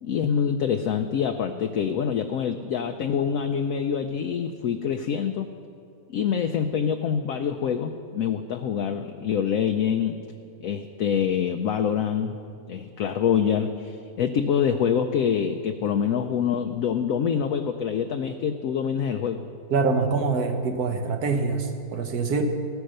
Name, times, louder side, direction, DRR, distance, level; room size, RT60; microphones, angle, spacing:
voice 1, 0.0-5.5 6.1-10.2 10.6-12.4 12.7-19.4, left 7 dB, 70° left, 6 dB, 0.9 m, -25 dB
voice 2, 19.7-22.4, right 4 dB, 65° right, 5 dB, 1.6 m, -25 dB
15.0 x 9.4 x 6.5 m, 2.5 s
omnidirectional pair, 1.8 m